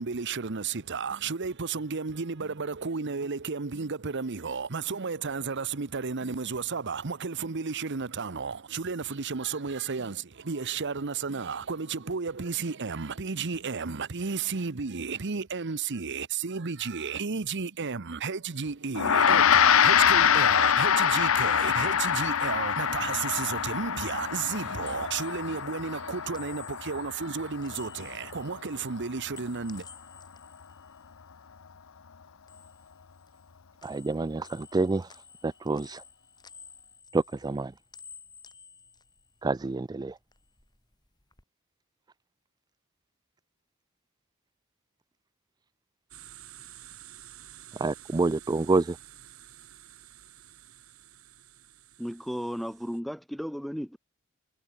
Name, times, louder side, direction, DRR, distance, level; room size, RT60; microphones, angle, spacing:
voice 1, 0.0-29.8, right 5 dB, 60° right, 1.0 m, -33 dB
Gong, 19.0-28.6, left 8 dB, 70° left, 0.7 m, -25 dB
sound 1, 24.8-31.8 32.1-33.5 33.8-39.8 40.1-41.4, left 6 dB, 20° left, 3.7 m, -53 dB
voice 2, 33.8-35.1 35.4-36.0 37.1-37.7 39.4-40.1 47.8-49.0, right 3 dB, 20° right, 0.4 m, -27 dB
sound 2, 46.1-53.0, right 11 dB, 90° right, 6.2 m, -51 dB
voice 3, 52.0-54.0, equal, ahead, 0.8 m, -34 dB
head